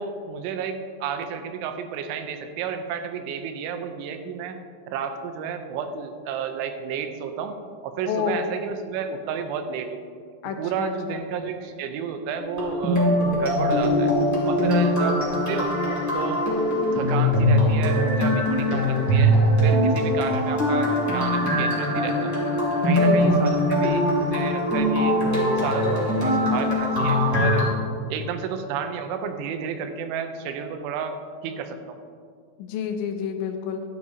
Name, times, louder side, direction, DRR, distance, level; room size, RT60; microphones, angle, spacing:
voice 1, 0.0-4.6 4.9-7.6 7.8-10.0 10.6-13.1 13.4-14.1 14.5-15.8 16.1-16.5 16.9-19.4 19.6-22.3 22.8-25.2 25.5-27.7 28.1-31.2 31.4-32.0, right 6 dB, 85° right, 7 dB, 3.1 m, -31 dB
voice 2, 8.1-8.5 10.4-11.2 22.8-23.4 32.6-33.8, left 7 dB, 80° left, 6 dB, 2.9 m, -29 dB
sound 1, 12.4-27.6, equal, 5° left, 1.4 m, -21 dB
12.5 x 11.0 x 2.8 m, 2.2 s
omnidirectional pair, 5.4 m